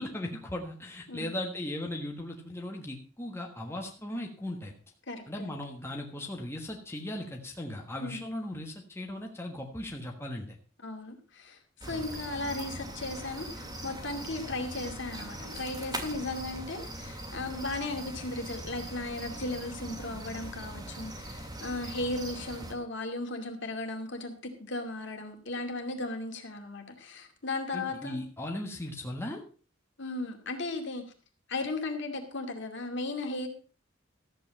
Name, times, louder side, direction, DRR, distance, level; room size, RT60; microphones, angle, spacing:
voice 1, 0.0-4.7 5.3-10.6 11.9-12.0 27.7-29.4, left 1 dB, 10° left, 1 dB, 1.4 m, -37 dB
voice 2, 5.1-5.5 8.0-8.3 10.8-28.2 30.0-31.1 31.5-33.5, left 2 dB, 55° left, 4 dB, 2.4 m, -36 dB
sound 1, 11.8-22.7, right 1 dB, 20° right, 2.2 m, -41 dB
14.0 x 8.2 x 5.4 m, 0.38 s
head